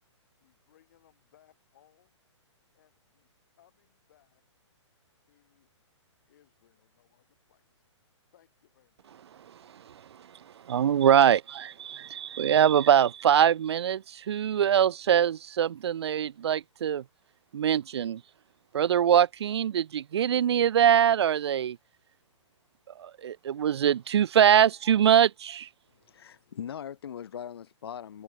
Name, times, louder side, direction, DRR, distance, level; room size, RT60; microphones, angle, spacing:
voice 1, 0.4-2.2 2.7-4.4 5.3-5.7 6.3-7.8 8.3-9.1, left 12 dB, 35° left, 3.3 m, -65 dB
voice 2, 10.7-17.0 17.5-18.2 18.7-21.8 23.0-25.7, right 9 dB, 60° right, 0.4 m, -23 dB
voice 3, 26.0-28.2, left 9 dB, 50° left, 1.1 m, -40 dB
hypercardioid pair, 175°, 16 cm